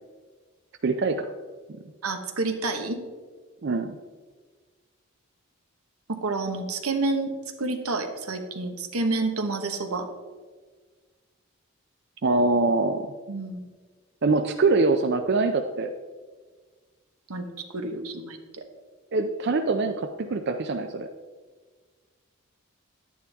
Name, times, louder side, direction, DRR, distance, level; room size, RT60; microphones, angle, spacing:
voice 1, 0.8-1.3 3.6-4.0 12.2-13.1 14.2-15.9 19.1-21.1, right 3 dB, 50° right, 7 dB, 0.4 m, -24 dB
voice 2, 2.0-3.0 6.1-7.3 7.6-10.1 13.3-13.6 17.3-18.6, right 3 dB, 85° right, 6 dB, 1.2 m, -29 dB
10.5 x 9.4 x 3.5 m, 1.4 s
head